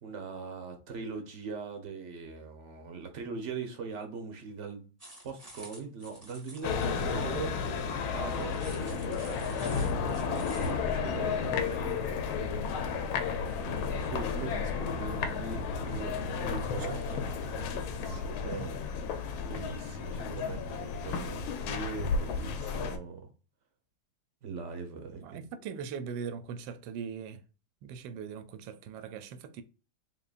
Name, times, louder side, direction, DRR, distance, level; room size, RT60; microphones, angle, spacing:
voice 1, 0.0-4.9 5.2-7.5 8.1-12.7 13.6-18.8 19.4-23.3 24.4-25.4, right 5 dB, 50° right, 0.9 m, -41 dB
sound 1, 5.0-6.9 8.4-10.8, right 1 dB, 10° right, 0.9 m, -49 dB
sound 2, 6.6-23.0, left 5 dB, 90° left, 1.5 m, -33 dB
voice 2, 25.2-27.4 27.8-29.6, right 6 dB, 75° right, 1.2 m, -40 dB
3.8 x 3.8 x 2.4 m
omnidirectional pair, 2.2 m